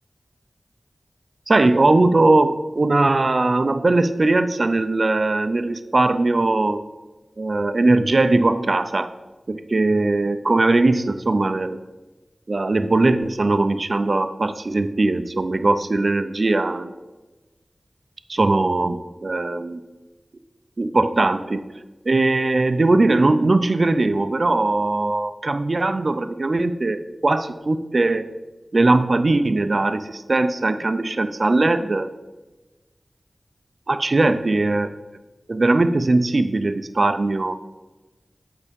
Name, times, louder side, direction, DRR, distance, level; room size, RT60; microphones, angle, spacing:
voice 1, 1.5-6.8 7.4-9.1 9.5-11.8 12.5-16.9 18.3-19.8 20.8-21.6 22.1-28.2 28.7-32.1 33.9-34.9 35.5-37.5, right 2 dB, 55° right, 10 dB, 0.5 m, -20 dB
8.4 x 5.7 x 5.2 m, 1.2 s
wide cardioid pair, 65°, 0 cm